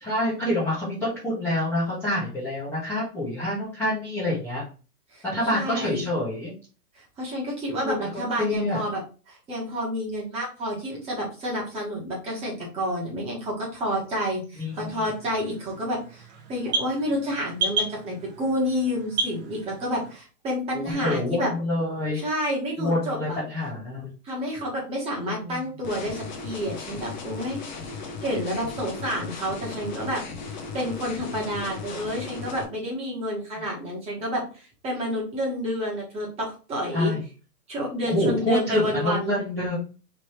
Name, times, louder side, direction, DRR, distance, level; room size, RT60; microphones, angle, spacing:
voice 1, 0.0-4.6 5.2-6.5 7.8-8.0 8.4-8.8 14.6-15.0 21.0-22.2 22.8-24.1 25.2-25.6 36.9-37.2 38.0-39.8, left 1 dB, 5° left, -11 dB, 0.8 m, -27 dB
voice 2, 5.5-6.1 7.2-9.0 9.3-21.5 22.1-23.4 24.2-27.6 28.0-30.2 30.7-37.1 37.7-39.4, equal, 15° right, -3 dB, 1.1 m, -29 dB
sound 1, 14.6-20.2, right 3 dB, 30° right, 0.7 m, -33 dB
sound 2, 25.8-32.6, left 4 dB, 30° left, 0.5 m, -36 dB
3.4 x 2.9 x 4.2 m, 0.36 s
hypercardioid pair, 155°, 47 cm